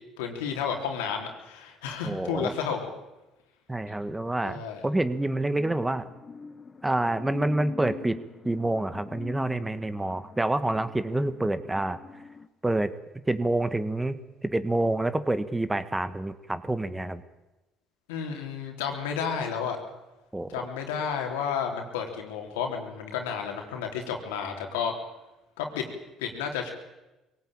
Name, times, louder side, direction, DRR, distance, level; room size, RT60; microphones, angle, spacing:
voice 1, 0.2-2.9 4.4-4.8 18.1-19.8 20.5-24.9 25.6-25.9 26.2-26.7, left 7 dB, 90° left, 3 dB, 3.6 m, -31 dB
voice 2, 2.0-2.5 3.7-6.1 6.8-8.2 8.4-12.0 12.6-12.9 13.3-17.2 20.3-20.5, right 2 dB, 15° right, 12 dB, 1.7 m, -27 dB
sound 1, 5.0-12.5, left 5 dB, 35° left, 1.4 m, -44 dB
23.0 x 18.0 x 8.9 m, 1.0 s
supercardioid pair, 70°, 0 cm